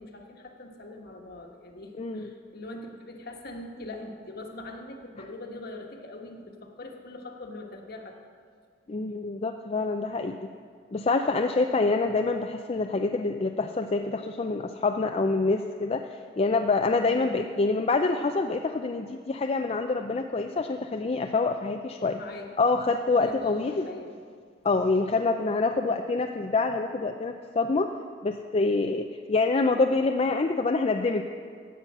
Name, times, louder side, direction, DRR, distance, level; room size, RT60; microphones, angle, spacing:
voice 1, 0.0-8.2 17.0-17.3 22.0-22.5 23.2-24.1, left 2 dB, 55° left, 3 dB, 1.4 m, -42 dB
voice 2, 2.0-2.3 8.9-10.5 10.9-22.2 22.6-23.9 24.6-27.9 28.2-31.2, left 3 dB, 35° left, 5 dB, 0.4 m, -26 dB
16.5 x 5.7 x 7.4 m, 2.1 s
head